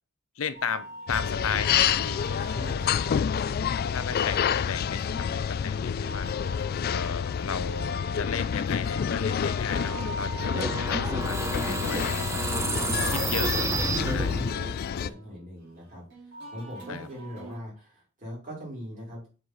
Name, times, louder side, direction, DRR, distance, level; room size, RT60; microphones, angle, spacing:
voice 1, 0.4-2.3 3.7-6.3 6.9-12.5 13.0-13.5 14.1-14.5 16.9-17.1, left 6 dB, 85° left, 0.7 m, -35 dB
sound 1, 0.5-17.6, right 2 dB, 60° right, 3.8 m, -44 dB
sound 2, 1.1-15.1, left 7 dB, 50° left, 0.3 m, -28 dB
voice 2, 2.5-3.2 3.5-3.6 12.6-13.3 14.3-19.3, equal, 40° right, 4.2 m, -41 dB
sound 3, 10.5-14.7, right 2 dB, 15° right, 0.7 m, -30 dB
7.4 x 4.6 x 4.0 m
head